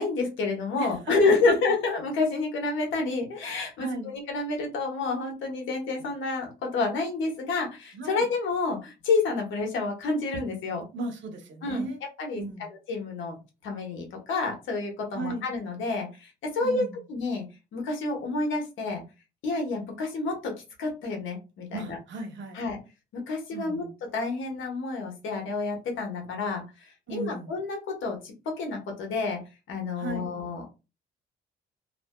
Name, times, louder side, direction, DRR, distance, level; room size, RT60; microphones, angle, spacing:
voice 1, 0.0-10.8 11.6-11.8 12.2-17.4 17.7-19.0 19.4-22.0 22.5-22.8 23.1-23.8 24.1-29.4 29.7-30.6, left 3 dB, 80° left, 1.0 m, -29 dB
voice 2, 0.8-1.2 1.5-1.6 3.8-4.1 7.9-8.3 10.9-12.0 12.4-12.7 15.1-15.4 16.6-17.0 21.7-22.6 23.5-23.9 27.1-27.5 29.9-30.3, right 2 dB, 70° right, 0.9 m, -36 dB
2.5 x 2.5 x 2.2 m
cardioid pair, 90°, 20 cm